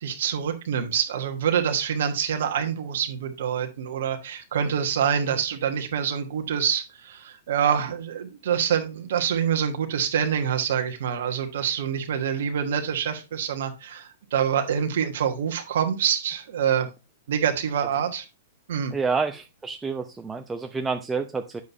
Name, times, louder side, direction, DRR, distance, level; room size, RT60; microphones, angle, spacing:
voice 1, 0.0-16.9 17.3-18.2 18.7-18.9, right 8 dB, 60° right, 6 dB, 1.4 m, -26 dB
voice 2, 18.9-21.6, right 4 dB, 10° right, 5 dB, 0.7 m, -28 dB
9.3 x 7.1 x 2.9 m, 0.28 s
figure-of-eight pair, 105°, 0 cm